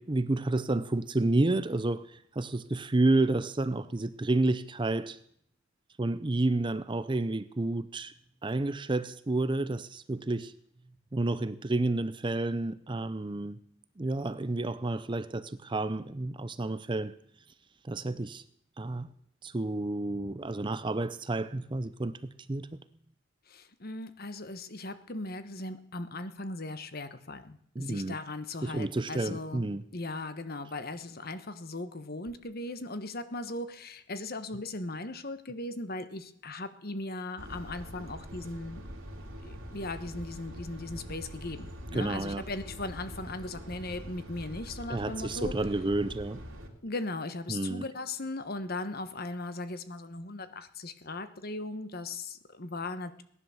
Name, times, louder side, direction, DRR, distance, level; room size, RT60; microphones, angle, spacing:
voice 1, 0.0-5.2 6.0-8.1 8.4-10.5 11.1-13.6 14.0-17.1 17.8-18.4 18.8-19.1 19.4-22.7 27.8-28.2 28.6-29.8 41.9-42.4 44.9-46.4 47.5-47.8, right 2 dB, 25° right, 0.5 m, -30 dB
voice 2, 23.5-38.9 39.4-45.5 46.8-53.2, left 2 dB, 50° left, 1.3 m, -38 dB
sound 1, 37.4-46.7, equal, 80° right, 2.9 m, -44 dB
17.5 x 11.0 x 7.2 m
head